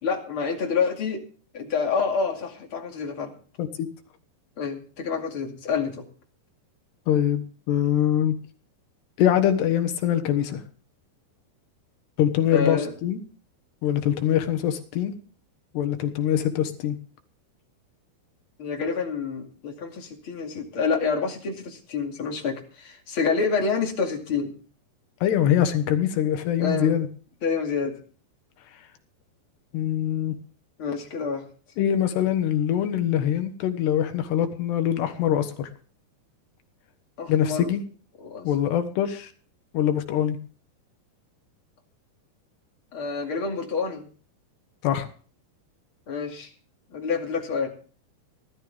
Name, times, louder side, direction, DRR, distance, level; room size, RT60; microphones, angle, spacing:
voice 1, 0.0-1.2 1.5-3.3 4.6-6.1 12.5-12.9 18.6-24.6 26.6-27.0 27.4-28.0 30.8-31.5 37.2-37.7 38.2-38.8 42.9-44.1 46.1-46.5 46.9-47.7, left 5 dB, 35° left, 2 dB, 2.6 m, -28 dB
voice 2, 7.1-8.3 9.2-10.6 12.2-13.2 13.8-15.2 15.7-17.0 25.2-27.1 29.7-30.4 31.8-35.7 37.3-37.8 38.4-39.3 39.7-40.4 44.8-45.1, left 10 dB, 80° left, 8 dB, 3.5 m, -23 dB
19.5 x 12.5 x 3.5 m, 0.40 s
omnidirectional pair, 4.9 m